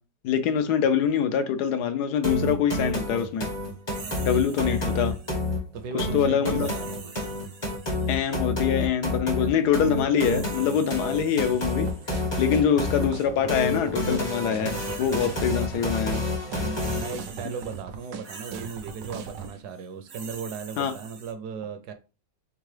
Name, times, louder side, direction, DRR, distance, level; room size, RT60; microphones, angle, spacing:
voice 1, 0.2-3.5 4.2-5.1 5.9-6.7 8.1-11.9 12.4-16.2 20.8-20.9, left 8 dB, 75° left, 1.1 m, -24 dB
sound 1, 2.2-17.3, left 2 dB, 25° left, 0.6 m, -29 dB
sound 2, 3.9-5.5 6.5-8.4 9.9-12.3 13.0-13.3 14.3-15.9 16.2-21.3, right 5 dB, 55° right, 0.7 m, -45 dB
voice 2, 4.0-4.6 5.7-7.1 16.6-21.9, right 6 dB, 75° right, 1.1 m, -37 dB
sound 3, 11.6-19.5, right 6 dB, 90° right, 1.3 m, -38 dB
3.7 x 3.5 x 3.2 m
omnidirectional pair, 1.9 m